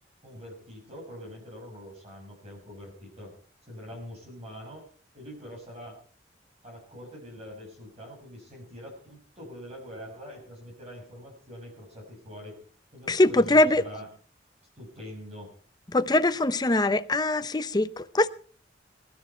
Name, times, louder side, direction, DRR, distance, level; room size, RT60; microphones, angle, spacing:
voice 1, 0.2-3.3 3.7-4.9 5.1-6.0 6.6-12.6 12.9-14.1 14.8-15.5, equal, 35° right, 6.1 m, -44 dB
voice 2, 13.1-13.8 15.9-18.3, left 2 dB, 25° left, 0.7 m, -22 dB
21.0 x 11.5 x 4.5 m
head